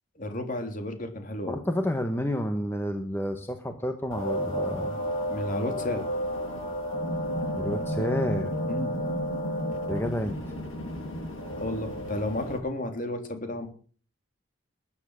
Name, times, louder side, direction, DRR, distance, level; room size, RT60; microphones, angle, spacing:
voice 1, 0.2-1.6 5.3-6.0 8.7-8.9 11.5-13.7, left 1 dB, 40° left, 5 dB, 3.4 m, -32 dB
voice 2, 1.5-5.0 7.6-8.5 9.9-10.4, equal, 10° left, 6 dB, 1.3 m, -30 dB
sound 1, 4.1-12.6, equal, 80° left, 7.4 m, -31 dB
20.5 x 10.0 x 6.4 m, 0.43 s
head